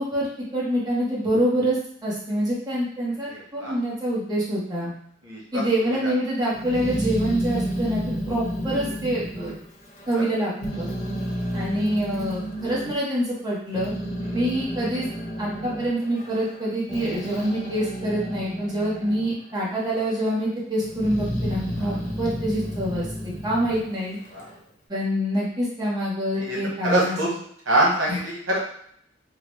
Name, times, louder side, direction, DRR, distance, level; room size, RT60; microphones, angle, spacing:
voice 1, 0.0-4.9 5.5-9.5 10.1-10.9 11.5-13.9 14.3-15.1 15.4-23.1 23.4-24.2 24.9-27.2 28.1-28.2, equal, 20° right, -7 dB, 1.0 m, -26 dB
voice 2, 3.3-3.8 5.2-6.1 10.2-10.3 14.2-14.4 21.8-22.0 24.3-24.4 26.3-27.3 27.6-28.6, right 1 dB, 80° right, -4 dB, 1.0 m, -26 dB
Growling, 6.5-10.3 10.6-12.9 13.5-19.3 19.7-20.4 20.8-24.6, equal, 40° left, 0.7 m, -31 dB
3.8 x 2.1 x 3.0 m, 0.65 s
head